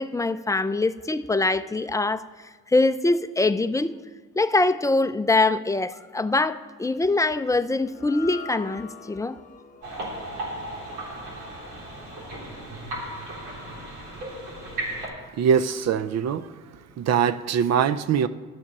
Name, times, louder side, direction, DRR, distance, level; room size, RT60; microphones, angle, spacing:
voice 1, 0.0-2.3 2.7-4.0 4.4-9.4, left 2 dB, 10° left, 0.4 m, -23 dB
sound 1, 7.8-14.2, left 5 dB, 25° left, 0.9 m, -46 dB
sound 2, 9.8-15.1, right 1 dB, 80° right, 3.4 m, -35 dB
voice 2, 15.4-16.5 17.0-18.3, right 7 dB, 60° right, 0.6 m, -22 dB
12.5 x 7.2 x 6.0 m
cardioid pair, 90°, 30 cm